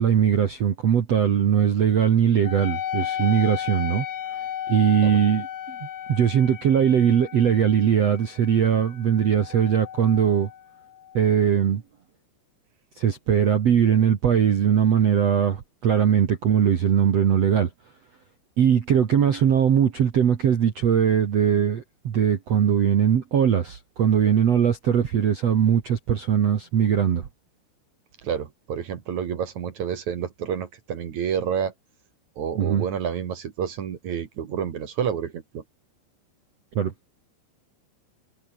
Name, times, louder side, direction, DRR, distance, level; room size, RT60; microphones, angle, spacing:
voice 1, 0.0-4.0 4.7-10.5 11.1-11.8 13.0-17.7 18.6-27.3 32.5-32.8 36.7-36.9, right 8 dB, 80° right, 1.4 m, -20 dB
Wind instrument woodwind instrument, 2.5-11.4, left 10 dB, 85° left, 5.5 m, -35 dB
voice 2, 28.2-31.7 32.4-35.6, right 8 dB, 55° right, 2.2 m, -29 dB
omnidirectional pair, 5.9 m